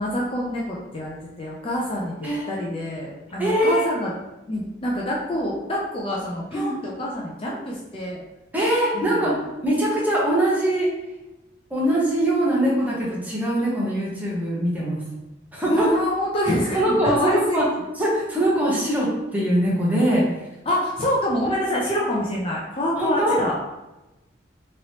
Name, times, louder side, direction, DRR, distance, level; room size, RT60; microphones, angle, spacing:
voice 1, 0.0-2.2 2.5-4.1 4.5-8.2 8.9-9.1 15.7-17.6 20.7-23.6, left 1 dB, 30° left, -4 dB, 0.4 m, -26 dB
voice 2, 3.4-3.8 6.5-6.7 8.5-9.4 9.6-10.9 11.7-15.0 15.5-15.9 16.7-17.7 18.0-20.3 23.0-23.4, right 1 dB, 10° right, -6 dB, 0.8 m, -22 dB
3.0 x 2.9 x 2.8 m, 0.99 s
head